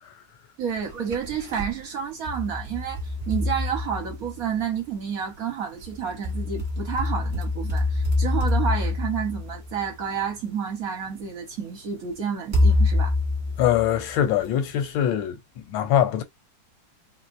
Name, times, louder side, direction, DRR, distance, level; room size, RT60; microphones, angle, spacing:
voice 1, 0.6-13.1, right 7 dB, 55° right, 1.2 m, -30 dB
sound 1, 0.8-1.7 2.3-4.6 5.8-10.2 11.1-11.2 12.5-14.4, left 2 dB, 35° right, 1.4 m, -26 dB
voice 2, 13.6-16.2, left 10 dB, 85° left, 1.4 m, -23 dB
4.2 x 2.1 x 2.5 m
omnidirectional pair, 2.1 m